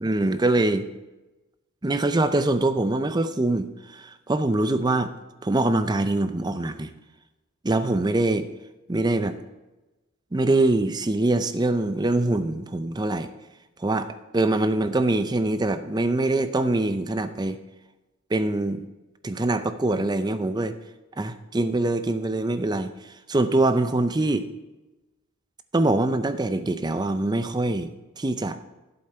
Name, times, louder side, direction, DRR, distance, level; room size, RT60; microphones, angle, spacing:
voice 1, 0.0-0.8 1.8-5.1 5.4-6.9 7.6-8.5 8.9-9.4 10.3-13.3 13.8-17.6 18.3-18.9 19.2-20.7 21.2-24.5 25.7-27.9 28.2-28.6, right 2 dB, 20° right, 10 dB, 0.5 m, -24 dB
11.0 x 8.0 x 4.4 m, 1.1 s
head